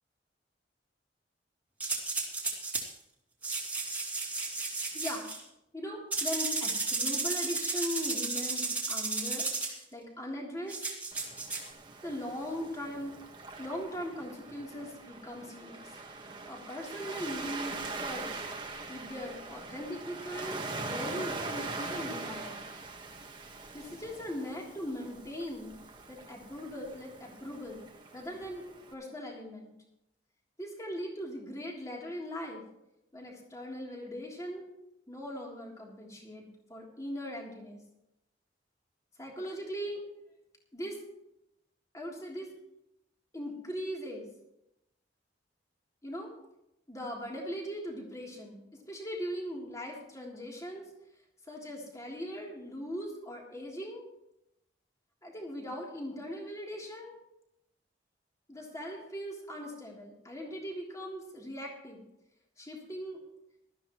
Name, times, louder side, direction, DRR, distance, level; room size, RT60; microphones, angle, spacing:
sound 1, 1.8-2.9 3.4-5.4 6.1-9.7 10.7-11.7, right 3 dB, 10° right, 2.7 m, -33 dB
voice 1, 4.9-5.3 5.7-10.8 12.0-13.1 13.6-16.0 16.5-18.5 18.9-22.6 23.7-25.8 26.1-27.8 28.1-28.6 28.9-29.7 30.6-32.6 33.1-34.6 35.1-37.8 39.2-40.0 40.7-41.0 41.9-42.5 43.3-44.3 46.0-46.3 46.9-50.9 51.5-54.0 55.2-57.1 58.5-62.0 62.6-63.2, equal, 20° left, -2 dB, 3.3 m, -40 dB
Waves surf, 11.1-28.9, right 3 dB, 25° right, 1.6 m, -42 dB
19.0 x 13.5 x 3.1 m, 0.83 s
head